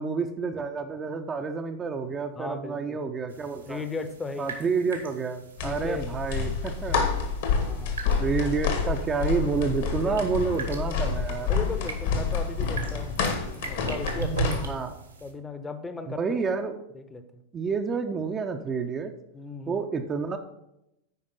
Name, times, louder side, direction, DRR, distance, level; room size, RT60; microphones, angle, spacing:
voice 1, 0.0-3.8 4.4-7.0 8.2-11.5 14.7-15.0 16.1-16.8 17.5-19.1 19.7-20.4, right 5 dB, 20° right, 4 dB, 0.6 m, -29 dB
voice 2, 2.4-3.0 3.7-4.5 5.6-6.1 7.6-8.0 10.0-10.3 11.5-13.2 13.5-14.8 15.2-16.4 16.9-17.4 19.3-19.8, left 3 dB, 15° left, 10 dB, 0.8 m, -36 dB
sound 1, 3.3-15.3, right 4 dB, 75° right, 1.7 m, -39 dB
sound 2, 5.6-14.7, left 5 dB, 55° left, 1.6 m, -28 dB
9.4 x 5.1 x 5.3 m, 0.84 s
figure-of-eight pair, 90°, 0 cm